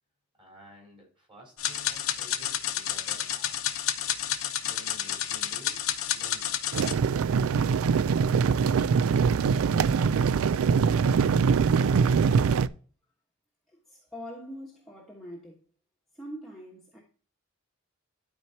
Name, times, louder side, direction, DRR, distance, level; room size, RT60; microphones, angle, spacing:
voice 1, 0.4-3.8 4.6-7.1, right 1 dB, 25° right, 4.1 m, -52 dB
sound 1, 1.6-6.9, left 10 dB, 75° left, 0.8 m, -30 dB
sound 2, 6.7-12.7, right 6 dB, 70° right, 0.3 m, -23 dB
voice 2, 13.9-15.6 16.2-17.0, equal, ahead, 1.3 m, -43 dB
12.0 x 4.6 x 2.8 m
head